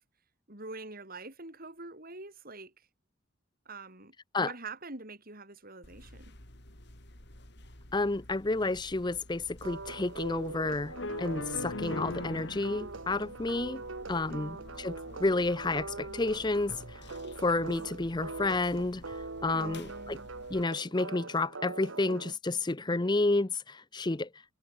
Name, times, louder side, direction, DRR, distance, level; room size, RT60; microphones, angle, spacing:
voice 1, 0.5-2.7 3.7-6.3 14.3-14.6 19.5-20.3, right 3 dB, 50° right, 6.2 m, -45 dB
sound 1, 5.8-20.6, left 1 dB, 60° left, 5.8 m, -51 dB
voice 2, 7.9-10.9 11.2-13.8 14.1-17.0 17.4-19.2 19.4-20.2 20.5-24.3, left 2 dB, 20° left, 0.7 m, -30 dB
sound 2, 9.6-22.3, right 3 dB, 80° right, 1.8 m, -42 dB
sound 3, 11.0-12.9 15.0-15.1 16.4-16.5 16.8-16.9 18.5-18.8, left 2 dB, 75° left, 3.4 m, -38 dB
head